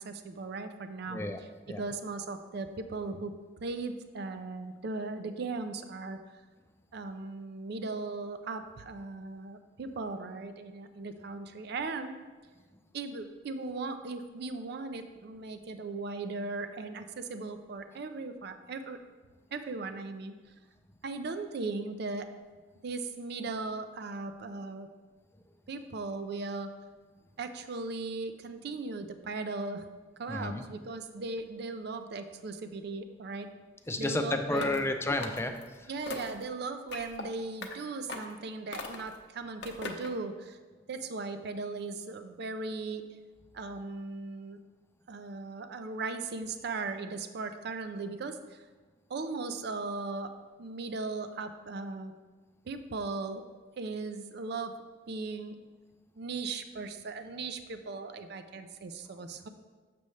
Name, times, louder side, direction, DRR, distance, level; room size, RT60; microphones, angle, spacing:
voice 1, 0.0-1.2 1.7-3.3 3.6-6.4 6.9-12.1 12.9-19.0 19.5-20.3 21.0-22.3 22.8-24.9 25.7-26.7 27.4-29.8 30.2-33.5 34.0-34.8 35.9-40.6 40.9-43.1 43.5-44.6 45.1-48.7 49.1-50.3 50.6-52.1 52.6-53.4 53.8-54.7 55.1-55.6 56.2-59.5, right 3 dB, 60° right, 9 dB, 0.4 m, -38 dB
voice 2, 30.3-30.7 33.9-35.9, left 2 dB, 15° left, 6 dB, 0.4 m, -31 dB
sound 1, 34.5-34.9 35.2-35.7 36.1-36.4 36.9-37.2 37.6-37.7 38.1-38.4 38.7-39.2 39.6-40.1, left 3 dB, 65° left, 0.7 m, -40 dB
6.8 x 6.4 x 3.2 m, 1.3 s
head